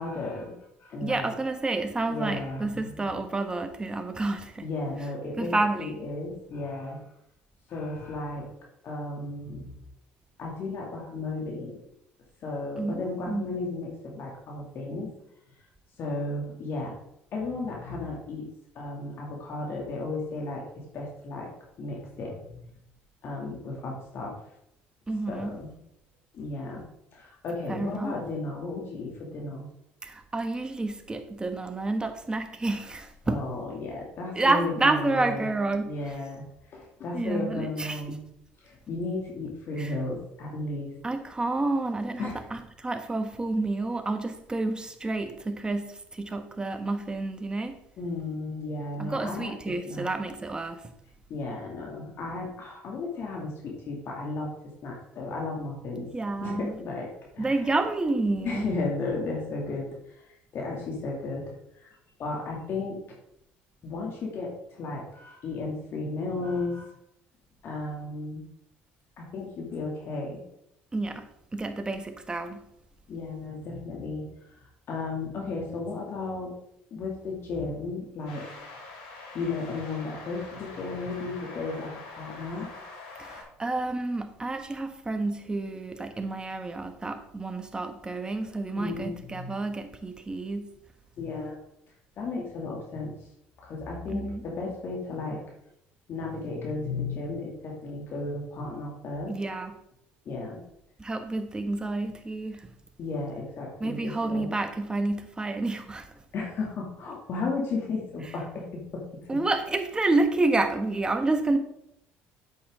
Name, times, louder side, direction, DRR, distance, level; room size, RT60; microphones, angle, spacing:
voice 1, 0.0-1.3 2.1-3.1 4.6-5.5 5.8-7.0 7.7-8.5 8.8-9.7 10.4-11.8 12.4-15.1 16.0-16.9 17.3-18.5 18.7-21.5 21.8-22.7 23.2-24.4 25.3-25.7 26.3-26.9 27.1-29.7 33.3-35.5 35.8-38.2 38.6-40.9 42.2-42.5 48.0-50.1 51.3-54.5 54.8-56.1 56.4-57.1 57.3-57.5 58.4-60.2 60.5-63.0 63.8-66.9 67.6-68.4 69.2-70.4 73.1-74.6 74.9-76.5 76.9-78.5 79.3-82.7 88.8-89.5 91.2-91.6 92.2-93.1 93.6-95.4 96.1-99.3 100.3-100.6 103.0-104.5 106.3-109.2, left 3 dB, 55° left, -1 dB, 2.6 m, -34 dB
voice 2, 1.0-4.7 5.4-6.0 12.8-13.5 25.1-25.6 27.7-28.2 30.0-33.5 34.4-36.0 37.1-38.2 39.8-39.9 41.0-47.8 49.0-50.8 55.9-56.7 57.4-58.7 70.9-72.6 83.2-90.7 94.1-94.4 99.3-99.8 101.0-102.7 103.8-106.1 109.3-111.6, right 2 dB, 20° right, 7 dB, 1.3 m, -29 dB
sound 1, 78.3-83.4, left 3 dB, 85° left, 3.8 m, -44 dB
8.5 x 7.8 x 3.8 m, 0.78 s
supercardioid pair, 80°, 5 cm